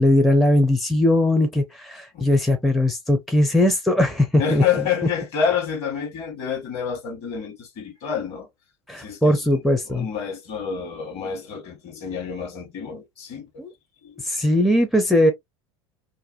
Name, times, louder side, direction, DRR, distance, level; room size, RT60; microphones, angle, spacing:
voice 1, 0.0-4.6 8.9-10.1 13.6-13.7 14.2-15.3, left 1 dB, ahead, 0.5 m, -19 dB
voice 2, 4.4-8.5 9.0-13.6 14.0-14.2, left 7 dB, 45° left, 1.2 m, -28 dB
2.5 x 2.1 x 2.6 m
figure-of-eight pair, 75°, 14 cm